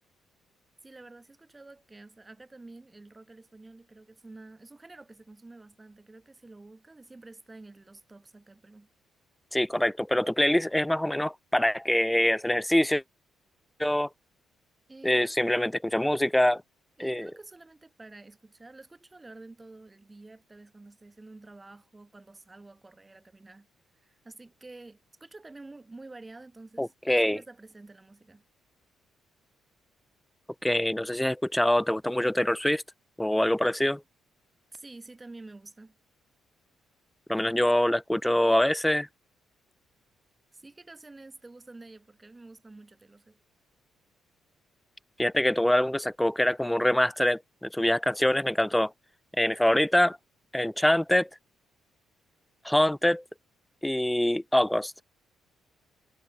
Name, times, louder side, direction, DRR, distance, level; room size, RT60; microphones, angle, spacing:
voice 1, 0.8-8.9 14.9-15.6 17.0-23.7 24.0-26.9 27.2-28.4 34.7-36.0 40.5-43.4, right 2 dB, 20° right, 7.2 m, -49 dB
voice 2, 9.5-13.0 13.8-14.1 15.0-16.6 17.0-17.3 26.8-27.4 30.6-32.8 33.2-34.0 37.3-39.1 45.2-48.9 49.4-50.2 50.5-51.3 52.6-53.2 53.8-54.9, left 1 dB, 5° left, 0.3 m, -24 dB
cardioid pair, 90°, 0 cm